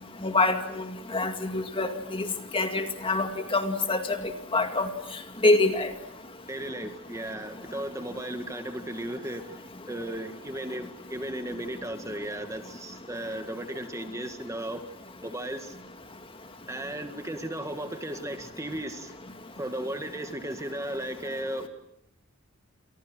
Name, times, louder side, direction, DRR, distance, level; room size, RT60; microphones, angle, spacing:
voice 1, 0.2-0.8 1.1-2.3 2.5-4.2 4.5-4.9 5.4-5.9, left 2 dB, 25° left, 6 dB, 2.3 m, -25 dB
voice 2, 6.5-9.6 9.9-14.8 15.2-15.7 16.7-19.1 19.6-21.7, right 1 dB, 15° right, 7 dB, 1.8 m, -35 dB
29.5 x 27.5 x 6.2 m, 0.79 s
head